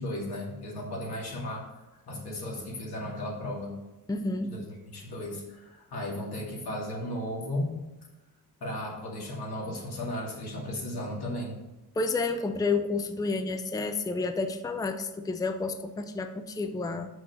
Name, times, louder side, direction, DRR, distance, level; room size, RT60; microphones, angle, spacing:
voice 1, 0.0-3.8 4.5-7.8 8.6-11.6, left 1 dB, 85° left, -3 dB, 2.5 m, -35 dB
voice 2, 4.1-4.5 12.0-17.1, left 3 dB, 10° left, 7 dB, 0.5 m, -30 dB
6.4 x 6.1 x 5.5 m, 1.1 s
wide cardioid pair, 120°, 37 cm